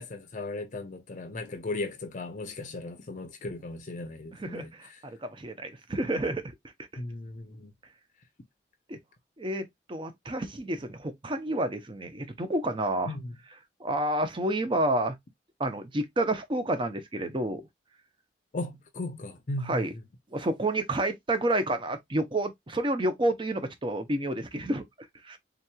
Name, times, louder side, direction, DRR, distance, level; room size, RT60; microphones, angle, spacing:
voice 1, 0.0-4.7 7.0-7.7 13.1-13.3 18.5-19.8, left 2 dB, 45° left, 0.6 m, -36 dB
voice 2, 4.3-6.5 8.9-9.0 9.4-13.2 13.8-15.2 15.6-17.7 19.6-19.9 20.3-24.8 25.2-25.4, right 1 dB, 30° right, 0.6 m, -29 dB
3.7 x 2.9 x 2.2 m
head